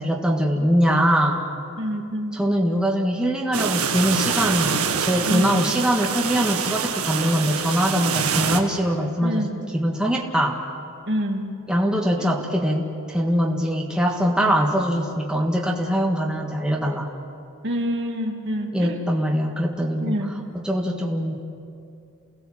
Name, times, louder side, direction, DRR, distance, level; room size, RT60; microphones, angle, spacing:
voice 1, 0.0-1.4 2.3-9.4 9.7-10.6 11.7-17.1 18.7-20.3 20.5-21.4, equal, 5° right, -1 dB, 1.7 m, -22 dB
voice 2, 1.8-2.4 5.2-5.6 9.2-9.7 11.1-11.5 12.2-12.3 14.4-14.6 17.6-19.0 20.0-20.3, equal, 55° right, 2 dB, 2.5 m, -27 dB
sound 1, 3.5-8.6, right 6 dB, 90° right, 1.7 m, -25 dB
29.0 x 18.0 x 7.4 m, 2.6 s
head